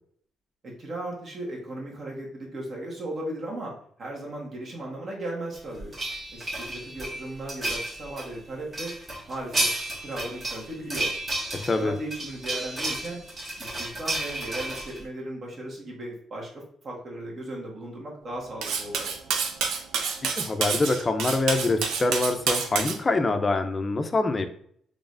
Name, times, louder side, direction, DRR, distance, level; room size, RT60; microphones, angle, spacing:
voice 1, 0.6-3.7 4.0-5.9 6.3-8.9 9.3-9.7 10.0-11.1 11.7-13.2 13.6-19.1, right 1 dB, 50° right, -2 dB, 1.5 m, -36 dB
sound 1, 5.6-8.3 8.7-15.0, right 1 dB, 35° right, 1.1 m, -32 dB
voice 2, 11.6-11.9 20.4-24.5, left 3 dB, 30° left, 8 dB, 0.5 m, -25 dB
Cutlery silverware, 18.6-23.0, right 6 dB, 85° right, 0.5 m, -28 dB
3.8 x 3.4 x 2.5 m, 0.62 s
cardioid pair, 90°, 0 cm